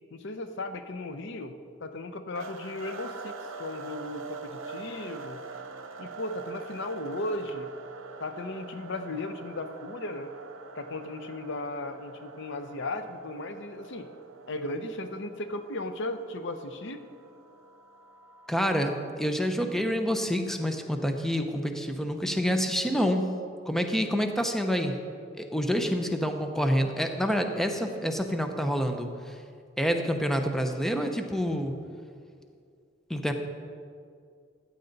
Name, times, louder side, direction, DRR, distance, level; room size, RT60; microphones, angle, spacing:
voice 1, 0.1-1.5 1.8-5.4 6.0-7.7 8.2-10.3 10.7-14.1 14.5-17.0, left 2 dB, 65° left, 9 dB, 0.7 m, -36 dB
sound 1, 2.4-19.0, right 4 dB, 80° right, 0.9 m, -44 dB
voice 2, 18.5-23.3 23.7-25.0 25.4-29.4 29.8-31.7 33.1-33.3, equal, ahead, 5 dB, 0.6 m, -27 dB
14.5 x 9.0 x 4.0 m, 2.3 s
head